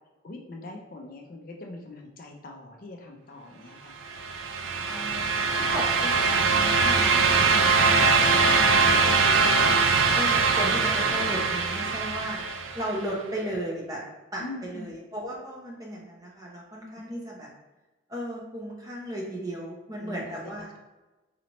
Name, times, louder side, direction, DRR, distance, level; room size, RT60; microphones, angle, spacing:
voice 1, 0.2-4.0 14.4-14.9 20.0-20.3, left 2 dB, 45° left, 1 dB, 0.5 m, -42 dB
sound 1, 4.1-13.0, right 4 dB, 85° right, 0.4 m, -22 dB
voice 2, 4.9-9.7 10.1-12.4 12.7-14.0 14.3-17.5 18.1-20.7, equal, 20° right, -3 dB, 0.8 m, -36 dB
4.0 x 3.0 x 2.9 m, 1.1 s
head